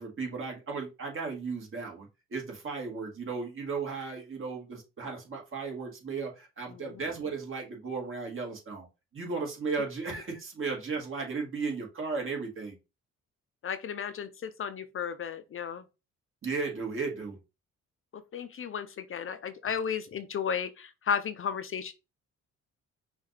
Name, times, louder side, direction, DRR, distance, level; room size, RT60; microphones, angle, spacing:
voice 1, 0.0-8.9 9.1-12.8 16.4-17.4, right 4 dB, 45° right, 2.1 m, -35 dB
voice 2, 6.7-7.0 13.6-15.8 18.1-21.9, left 7 dB, 45° left, 0.6 m, -34 dB
5.6 x 2.6 x 3.3 m
cardioid pair, 90°, 30 cm